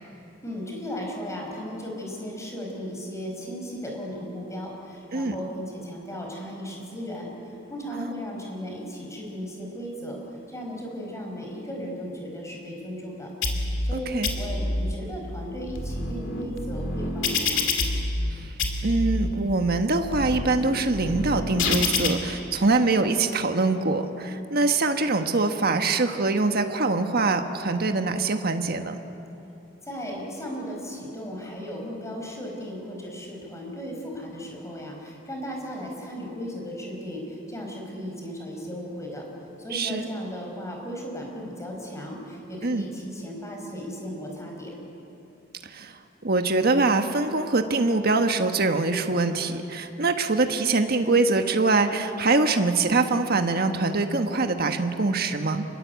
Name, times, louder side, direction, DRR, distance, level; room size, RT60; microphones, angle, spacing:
voice 1, 0.4-10.2 10.5-13.3 13.8-17.7 29.8-39.3 39.6-44.7, equal, 15° left, 0 dB, 5.7 m, -36 dB
sound 1, 13.4-13.9 14.2-14.9 15.5-18.3 18.6-19.3 19.9-22.1, left 3 dB, 70° left, 2.9 m, -27 dB
voice 2, 13.9-14.3 18.3-18.5 18.8-29.0 39.7-40.1 42.6-42.8 45.6-55.6, right 3 dB, 50° right, 6 dB, 1.4 m, -24 dB
27.5 x 21.0 x 8.3 m, 3.0 s
head